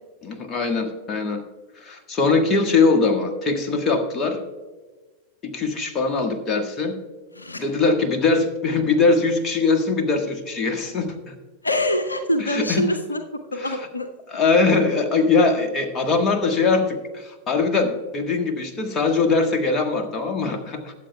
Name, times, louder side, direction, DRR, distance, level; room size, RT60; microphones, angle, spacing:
voice 1, 0.2-1.4 1.8-4.4 5.4-7.0 7.5-11.3 12.4-12.8 13.6-13.8 14.3-20.9, left 4 dB, 25° left, 5 dB, 1.4 m, -21 dB
voice 2, 7.4-7.7 11.6-14.1, left 1 dB, 80° left, 8 dB, 0.6 m, -25 dB
21.0 x 7.8 x 2.2 m, 1.3 s
figure-of-eight pair, 90°, 0 cm